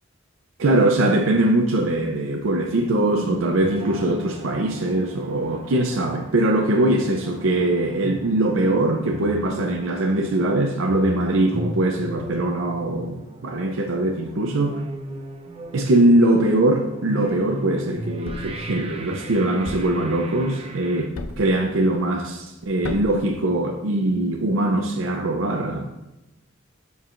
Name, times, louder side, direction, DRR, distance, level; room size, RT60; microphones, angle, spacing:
voice 1, 0.6-14.8 15.7-25.8, right 1 dB, 75° right, 3 dB, 0.6 m, -21 dB
sound 1, 2.7-21.1, right 1 dB, 30° right, 0.6 m, -37 dB
Thump thud, 18.2-18.6 19.7-20.0 21.2-21.6 22.8-23.2, left 2 dB, 75° left, 0.5 m, -33 dB
10.5 x 4.7 x 2.5 m, 0.98 s
head